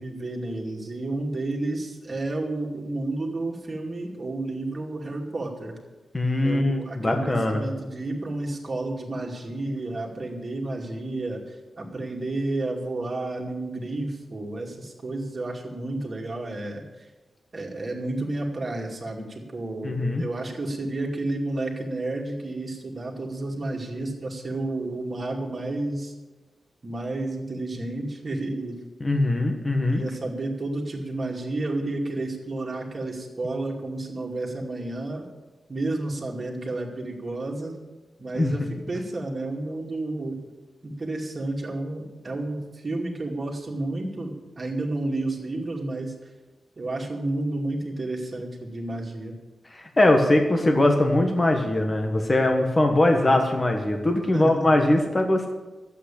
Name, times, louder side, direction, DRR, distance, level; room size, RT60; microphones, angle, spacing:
voice 1, 0.0-5.8 6.4-16.8 17.5-26.1 26.8-28.8 29.9-35.2 35.7-37.7 38.2-40.4 40.8-46.1 46.8-49.3 54.3-54.6, right 2 dB, 35° right, 0 dB, 2.5 m, -31 dB
voice 2, 6.1-7.6 19.8-20.2 29.0-30.0 38.3-38.7 49.7-55.5, left 1 dB, 25° left, 3 dB, 1.4 m, -21 dB
12.5 x 8.3 x 8.6 m, 1.2 s
wide cardioid pair, 155°, 0 cm